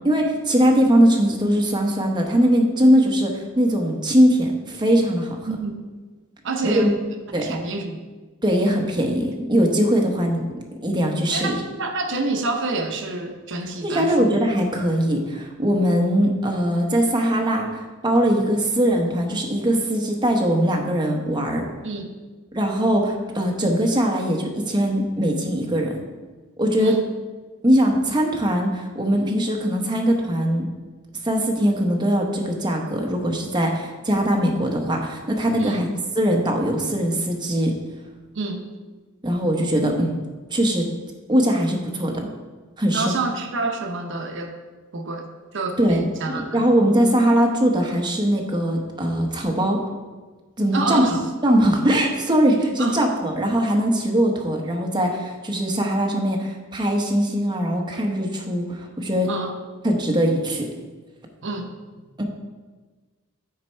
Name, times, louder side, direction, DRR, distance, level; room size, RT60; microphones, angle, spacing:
voice 1, 0.0-5.4 6.6-6.9 7.3-7.5 8.4-10.5 10.8-11.6 13.8-21.6 22.5-25.9 26.6-27.0 27.6-30.7 31.2-35.9 36.2-37.7 39.2-40.2 40.5-40.9 41.3-42.3 42.8-43.1 45.8-46.0 46.3-49.8 50.6-51.0 51.4-59.3 59.8-60.7 62.2-62.3, equal, 20° right, 1 dB, 1.0 m, -21 dB
voice 2, 5.5-5.8 6.4-7.0 7.4-8.1 11.3-14.3 21.8-22.2 26.8-27.0 35.6-35.8 38.3-38.7 42.9-44.5 44.9-45.3 45.5-46.6 50.7-51.2 52.8-53.0 59.3-59.5 61.4-61.7, right 3 dB, 60° right, 5 dB, 0.7 m, -27 dB
9.5 x 4.2 x 4.5 m, 1.3 s
head